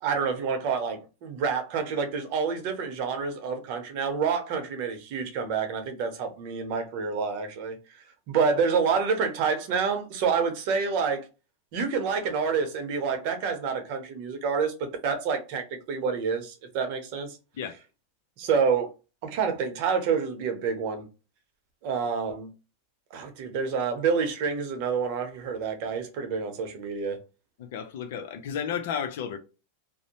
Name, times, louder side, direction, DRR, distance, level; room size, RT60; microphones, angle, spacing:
voice 1, 0.0-7.8 8.3-11.3 11.7-17.4 18.4-18.9 19.2-21.1 21.8-22.5 23.1-27.2, right 5 dB, 55° right, 0.8 m, -28 dB
voice 2, 27.6-29.4, left 8 dB, 70° left, 0.5 m, -32 dB
2.6 x 2.1 x 2.9 m
hypercardioid pair, 120°, 0 cm